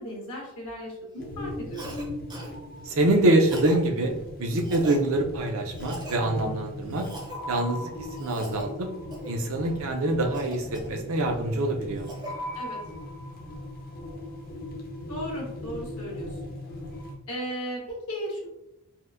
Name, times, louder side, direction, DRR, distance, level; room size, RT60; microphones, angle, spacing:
voice 1, 0.0-1.9 12.5-12.8 15.1-16.5 17.3-18.5, equal, 70° left, -3 dB, 1.3 m, -36 dB
sound 1, 1.2-17.2, left 1 dB, 40° left, 0.6 m, -38 dB
Cough, 1.7-2.0 2.3-2.5 3.4-3.8 4.5-5.0 5.7-6.2 6.9-7.4 8.1-8.6 9.1-9.4 10.3-11.3 11.7-12.3, right 2 dB, 20° right, 0.6 m, -41 dB
voice 2, 2.9-4.1 4.4-7.1 7.5-7.9 8.2-8.9 9.2-12.1, right 1 dB, 65° right, 3 dB, 0.5 m, -25 dB
4.2 x 2.1 x 2.5 m, 0.84 s
head